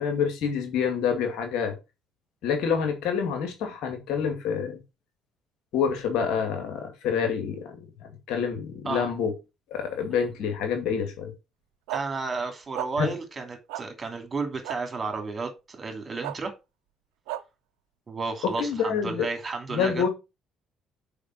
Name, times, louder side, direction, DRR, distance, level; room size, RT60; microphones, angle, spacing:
voice 1, 0.0-1.8 2.4-4.8 5.7-9.3 9.7-11.3 13.0-13.1 18.4-19.3 19.7-20.1, left 6 dB, 70° left, 2.2 m, -27 dB
voice 2, 11.9-16.5 18.1-20.1, right 4 dB, 35° right, 2.7 m, -32 dB
sound 1, 11.9-12.0 12.7-12.9 13.7-13.8 14.6-14.8 16.2-16.4 17.3-17.4, right 15 dB, 80° right, 0.5 m, -32 dB
5.2 x 5.0 x 6.1 m
hypercardioid pair, 60°, 0 cm